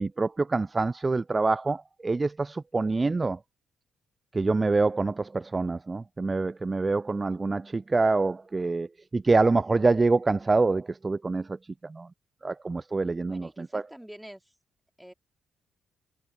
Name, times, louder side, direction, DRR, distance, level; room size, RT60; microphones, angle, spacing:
voice 1, 0.0-3.4 4.3-11.6 11.8-12.1 12.4-13.8, right 3 dB, 30° right, 0.5 m, -26 dB
voice 2, 13.2-14.5 15.0-15.1, equal, 5° right, 3.2 m, -47 dB
hypercardioid pair, 45°, 0 cm